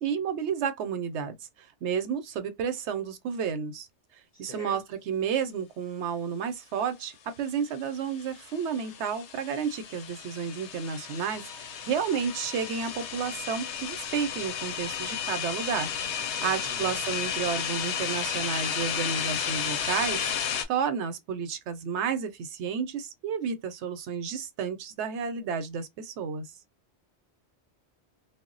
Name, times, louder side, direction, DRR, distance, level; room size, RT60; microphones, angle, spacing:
voice 1, 0.0-1.4 1.8-3.9 4.4-20.3 20.7-26.5, right 7 dB, 80° right, 0.9 m, -31 dB
voice 2, 4.4-4.8 16.4-17.0, left 3 dB, 50° left, 0.5 m, -45 dB
sound 1, 8.1-20.6, left 7 dB, 90° left, 0.9 m, -33 dB
2.3 x 2.0 x 3.7 m
omnidirectional pair, 1.2 m